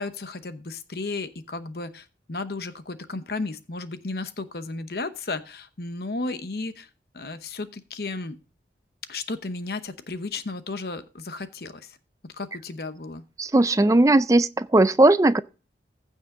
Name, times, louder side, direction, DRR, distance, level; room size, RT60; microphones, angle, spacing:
voice 1, 0.0-6.9 7.1-8.4 9.1-12.0 12.2-13.2, left 3 dB, 55° left, 0.9 m, -34 dB
voice 2, 13.4-15.4, right 2 dB, 20° right, 0.4 m, -18 dB
15.0 x 5.6 x 3.8 m
head